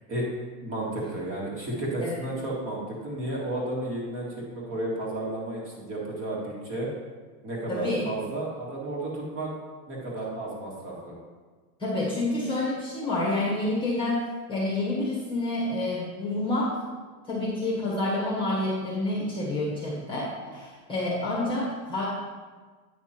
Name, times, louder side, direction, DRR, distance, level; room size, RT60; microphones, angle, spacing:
voice 1, 0.6-6.9 7.4-9.5 9.9-11.1, right 1 dB, 25° right, -3 dB, 1.8 m, -32 dB
voice 2, 7.7-8.0 11.8-14.2 14.5-16.7 17.2-22.1, left 2 dB, 10° left, -5 dB, 1.4 m, -28 dB
9.1 x 5.9 x 4.4 m, 1.4 s
supercardioid pair, 165°, 48 cm